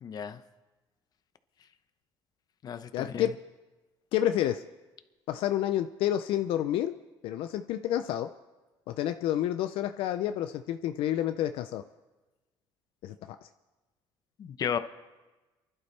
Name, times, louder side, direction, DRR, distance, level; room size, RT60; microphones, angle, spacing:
voice 1, 0.0-0.4 2.6-3.3 14.4-14.8, left 8 dB, 45° left, 11 dB, 0.8 m, -33 dB
voice 2, 2.9-3.3 4.1-4.6 5.3-6.9 7.2-8.3 8.9-11.8 13.0-13.4, left 11 dB, 75° left, 8 dB, 0.5 m, -29 dB
28.0 x 11.5 x 3.3 m, 1.2 s
cardioid pair, 120°, 9 cm